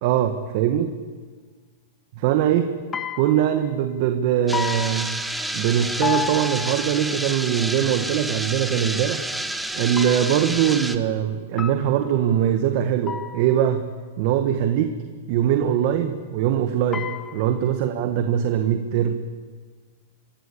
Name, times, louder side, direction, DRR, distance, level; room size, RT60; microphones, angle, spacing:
voice 1, 0.0-0.9 2.2-2.8 3.2-5.1 5.5-13.9 14.2-15.0 15.3-19.1, right 10 dB, 50° right, 7 dB, 1.4 m, -22 dB
sound 1, 2.9-3.7 4.5-5.7 6.0-7.1 10.0-10.6 11.6-12.3 13.1-13.7 16.9-17.7, left 6 dB, 20° left, 0.9 m, -32 dB
sound 2, 4.5-11.0, right 1 dB, 5° right, 1.2 m, -29 dB
25.0 x 14.5 x 8.6 m, 1.5 s
hypercardioid pair, 135°, 0 cm